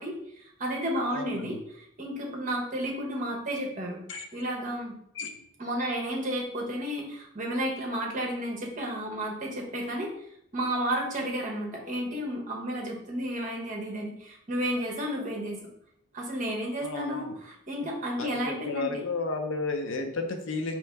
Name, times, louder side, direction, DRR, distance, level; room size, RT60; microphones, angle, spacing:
voice 1, 0.0-4.0 4.3-5.0 5.6-10.1 10.5-15.6 16.1-19.1, equal, 35° right, 0 dB, 0.9 m, -32 dB
voice 2, 1.1-1.6 4.1-4.3 5.1-5.4 16.8-17.4 18.2-20.8, left 3 dB, 60° left, 5 dB, 0.5 m, -32 dB
4.2 x 2.9 x 3.4 m, 0.72 s
head